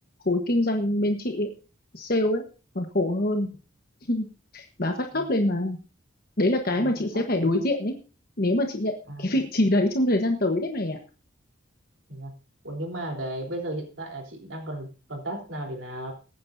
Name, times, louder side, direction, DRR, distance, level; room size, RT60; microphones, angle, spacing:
voice 1, 0.2-1.5 1.9-2.4 2.7-3.5 4.1-4.3 4.5-5.8 6.4-8.0 8.4-8.9 9.2-11.0, left 1 dB, 50° left, 3 dB, 1.3 m, -24 dB
voice 2, 6.8-7.5 9.1-9.3 12.1-12.3 12.6-16.1, right 1 dB, 70° right, 2 dB, 3.7 m, -35 dB
22.5 x 9.3 x 2.7 m, 0.33 s
head